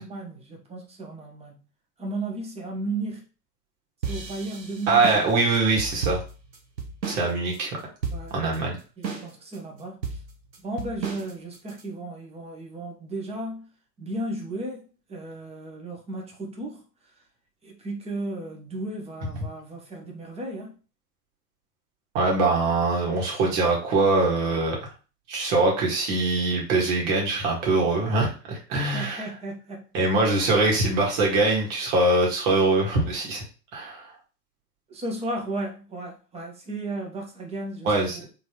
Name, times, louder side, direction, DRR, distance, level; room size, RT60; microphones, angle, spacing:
voice 1, 0.0-1.6 2.0-3.2 4.1-5.0 8.1-8.3 9.0-10.0 10.6-13.6 14.0-16.8 17.6-20.8 28.7-29.9 34.9-38.3, right 2 dB, 10° right, 0 dB, 1.0 m, -34 dB
sound 1, 4.0-7.3 7.5-7.6 8.0-8.6 9.0-9.6 10.0-11.8, right 5 dB, 85° right, 1.1 m, -33 dB
voice 2, 4.9-6.2 7.1-7.7 8.3-8.8 22.1-24.8 25.3-29.3 29.9-33.4 33.7-34.1 37.8-38.2, right 3 dB, 50° right, -1 dB, 2.0 m, -23 dB
3.8 x 3.6 x 3.1 m, 0.35 s
figure-of-eight pair, 100°, 50 cm